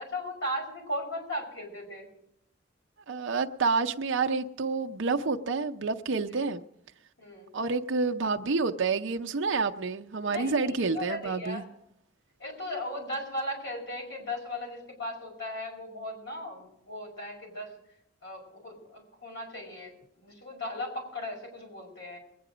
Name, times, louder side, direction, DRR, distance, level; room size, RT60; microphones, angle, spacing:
voice 1, 0.0-2.1 6.3-6.5 7.2-7.5 10.3-11.6 12.4-17.7 18.2-22.2, left 1 dB, 60° left, 5.5 m, -37 dB
voice 2, 3.1-6.6 7.5-11.6, right 4 dB, 65° right, 0.6 m, -28 dB
21.5 x 9.5 x 5.0 m
head